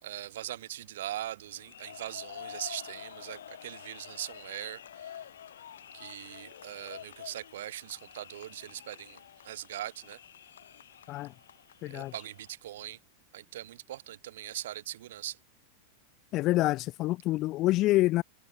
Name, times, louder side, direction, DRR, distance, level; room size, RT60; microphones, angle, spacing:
voice 1, 0.0-5.2 5.9-10.2 11.8-13.0 13.3-15.4, right 13 dB, 60° right, 2.7 m, -41 dB
sound 1, 1.5-12.5, left 9 dB, 65° left, 7.7 m, -48 dB
voice 2, 11.8-12.1 16.3-18.2, left 17 dB, 35° left, 0.8 m, -27 dB
figure-of-eight pair, 90°, 0 cm